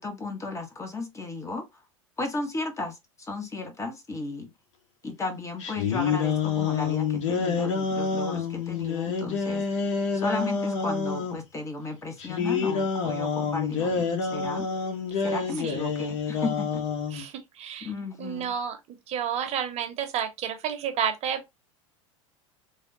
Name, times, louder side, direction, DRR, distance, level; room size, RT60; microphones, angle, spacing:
voice 1, 0.0-1.6 2.2-4.5 5.0-9.7 10.1-14.7 15.2-16.8 17.8-18.5, left 3 dB, 20° left, 1.1 m, -34 dB
sound 1, 5.6-11.4 12.2-17.3, left 5 dB, 70° left, 1.0 m, -28 dB
voice 2, 17.1-17.9 18.2-18.8 19.1-21.5, right 8 dB, 40° right, 1.0 m, -30 dB
3.4 x 2.4 x 2.6 m
hypercardioid pair, 95°, 17 cm